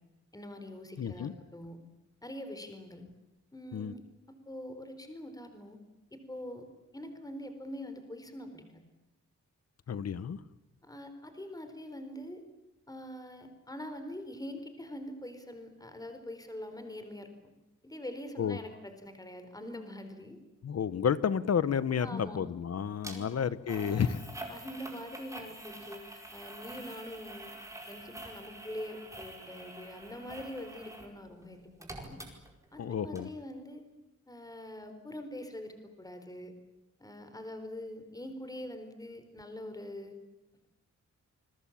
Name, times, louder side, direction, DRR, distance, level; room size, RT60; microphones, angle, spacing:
voice 1, 0.3-1.8 2.2-3.1 3.5-4.0 4.5-5.8 6.1-6.7 6.9-8.8 10.8-12.4 12.9-17.3 17.8-20.4 22.0-22.4 23.1-23.5 24.5-26.0 26.3-27.5 27.9-32.2 32.7-33.8 34.3-36.5 37.0-40.2, left 1 dB, 10° left, 8 dB, 4.1 m, -44 dB
voice 2, 1.0-1.3 3.7-3.9 9.9-10.4 18.4-18.6 20.6-24.2 32.8-33.3, left 7 dB, 55° left, 16 dB, 1.1 m, -31 dB
sound 1, 23.0-23.2 23.7-31.1 31.4-32.9 33.2-33.3, right 1 dB, 10° right, 4.8 m, -46 dB
28.5 x 22.0 x 8.7 m, 0.92 s
wide cardioid pair, 150°, 29 cm